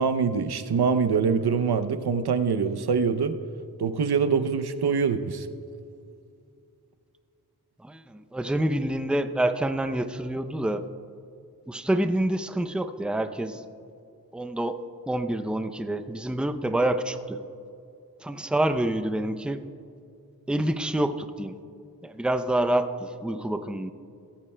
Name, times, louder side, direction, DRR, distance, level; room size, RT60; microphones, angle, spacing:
voice 1, 0.0-3.4 3.8-5.5, right 5 dB, 90° right, 10 dB, 0.7 m, -24 dB
voice 2, 7.8-10.8 11.7-13.6 14.3-14.8 15.1-17.4 18.2-19.6 20.5-21.6 22.0-23.9, right 1 dB, 5° right, 9 dB, 0.5 m, -27 dB
17.0 x 14.0 x 2.2 m, 2.5 s
wide cardioid pair, 75°, 38 cm